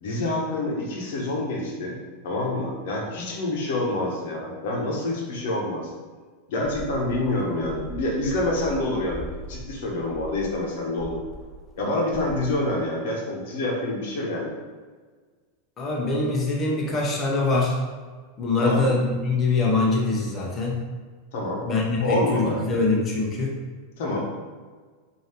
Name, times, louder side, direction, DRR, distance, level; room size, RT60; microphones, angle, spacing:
voice 1, 0.0-2.0 2.2-5.9 6.5-11.2 11.8-14.5 18.6-18.9 21.3-21.6 22.0-22.6 24.0-24.3, left 2 dB, 70° left, -2 dB, 1.0 m, -27 dB
sound 1, 6.6-11.8 12.1-12.4, right 2 dB, 10° right, 0.6 m, -40 dB
voice 2, 15.8-17.8 18.4-20.8 21.6-23.5, left 3 dB, 25° left, -3 dB, 0.9 m, -23 dB
4.8 x 2.8 x 2.9 m, 1.5 s
hypercardioid pair, 105°, 0 cm